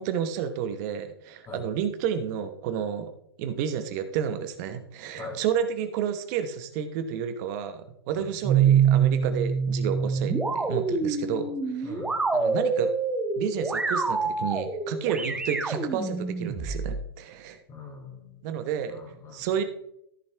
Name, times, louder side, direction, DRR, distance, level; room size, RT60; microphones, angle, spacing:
voice 1, 0.0-3.1 3.4-12.0 12.3-12.9 13.4-17.6 18.4-18.9 19.3-19.6, right 8 dB, 45° right, 8 dB, 1.0 m, -31 dB
sound 1, 8.4-17.0, right 6 dB, 5° right, 1.1 m, -26 dB
voice 2, 17.7-18.4 18.9-19.6, left 3 dB, 25° left, 2 dB, 2.6 m, -42 dB
14.0 x 6.5 x 3.4 m, 0.75 s
hypercardioid pair, 125°, 13 cm